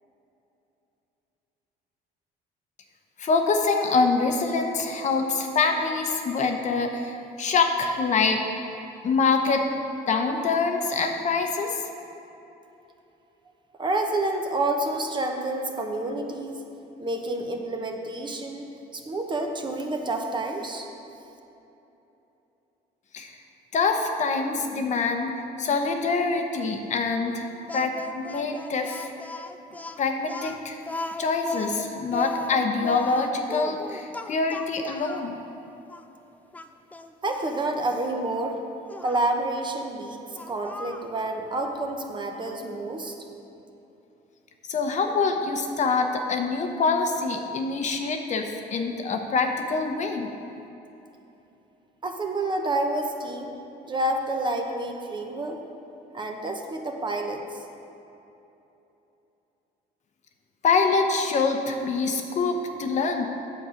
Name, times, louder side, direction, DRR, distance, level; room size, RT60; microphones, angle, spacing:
voice 1, 3.2-8.4 9.0-9.6 10.1-11.8 23.1-23.3 23.7-25.3 25.6-27.5 27.7-29.1 30.0-30.8 31.2-35.4 44.7-50.3 60.6-63.3, left 4 dB, 45° left, 4 dB, 0.8 m, -25 dB
voice 2, 13.8-16.6 17.0-18.6 18.9-20.9 37.2-38.6 39.0-43.2 52.0-53.5 53.8-55.6 56.1-57.6, right 2 dB, 25° right, 3 dB, 0.9 m, -29 dB
Speech, 27.7-35.3 35.9-36.0 36.5-37.5 38.9-39.2 40.3-41.1, left 2 dB, 10° left, 0.4 m, -36 dB
8.2 x 7.1 x 5.1 m, 3.0 s
cardioid pair, 110°, 17 cm